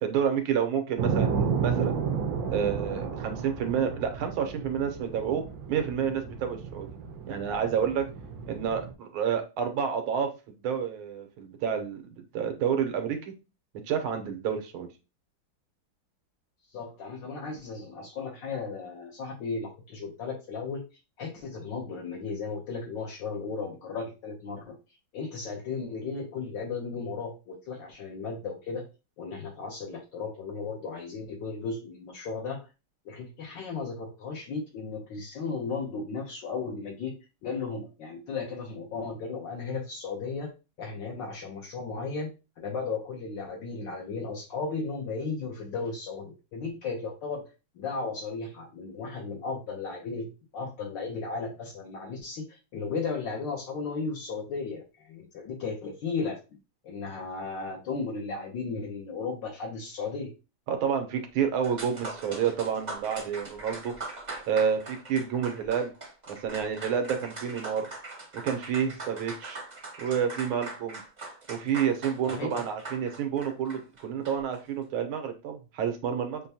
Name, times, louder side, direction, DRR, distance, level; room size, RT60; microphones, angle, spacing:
voice 1, 0.0-1.9 2.5-6.9 7.3-8.1 8.5-10.3 10.6-12.0 12.3-13.3 13.9-14.9 60.7-63.9 64.5-65.9 66.3-67.9 68.3-69.6 70.0-71.0 71.5-76.4, right 7 dB, 85° right, 6 dB, 1.7 m, -29 dB
sound 1, 1.0-8.9, right 6 dB, 65° right, 0.9 m, -32 dB
voice 2, 16.7-20.8 21.2-24.7 25.1-28.9 29.2-32.6 33.0-37.1 37.4-40.5 40.8-42.3 42.6-47.4 47.8-50.3 50.5-56.4 56.8-60.3 72.2-72.6, left 4 dB, 70° left, -2 dB, 1.4 m, -35 dB
sound 2, 61.6-74.6, right 2 dB, 35° right, 0.7 m, -41 dB
6.6 x 2.2 x 2.7 m, 0.29 s
omnidirectional pair, 2.2 m